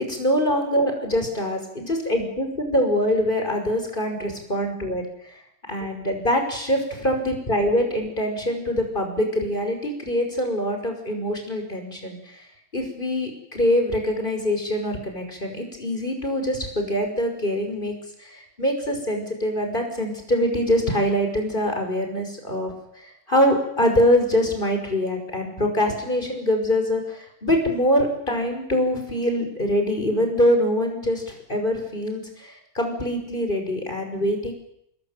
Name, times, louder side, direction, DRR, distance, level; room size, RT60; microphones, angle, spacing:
voice 1, 0.0-5.3 5.7-12.5 12.7-34.5, equal, 25° left, 4 dB, 6.0 m, -24 dB
28.0 x 20.5 x 9.3 m, 0.77 s
omnidirectional pair, 2.1 m